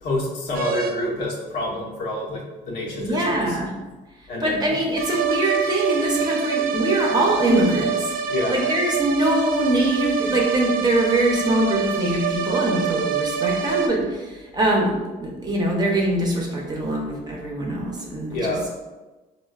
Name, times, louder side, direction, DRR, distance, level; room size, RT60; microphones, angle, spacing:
voice 1, 0.0-3.6 4.3-4.7 8.3-8.5 18.3-18.6, left 1 dB, 75° left, -3 dB, 0.9 m, -27 dB
sound 1, 0.5-0.9 5.0-13.9, right 7 dB, 60° right, 0.4 m, -26 dB
voice 2, 3.0-3.7 4.4-8.1 8.5-18.6, right 1 dB, 25° right, -1 dB, 0.7 m, -23 dB
4.1 x 2.2 x 2.3 m, 1.2 s
cardioid pair, 110°, 17 cm